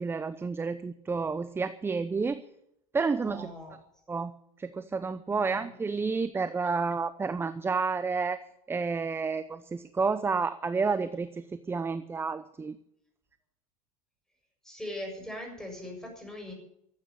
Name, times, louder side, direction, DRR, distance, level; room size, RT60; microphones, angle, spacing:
voice 1, 0.0-2.4 2.9-3.5 4.1-4.3 4.6-8.4 8.7-12.8, right 4 dB, 15° right, 12 dB, 0.7 m, -30 dB
voice 2, 3.2-3.7 5.3-5.7 14.6-16.5, left 1 dB, 5° left, 2 dB, 6.6 m, -40 dB
14.0 x 8.6 x 9.8 m, 0.76 s
supercardioid pair, 115°, 18 cm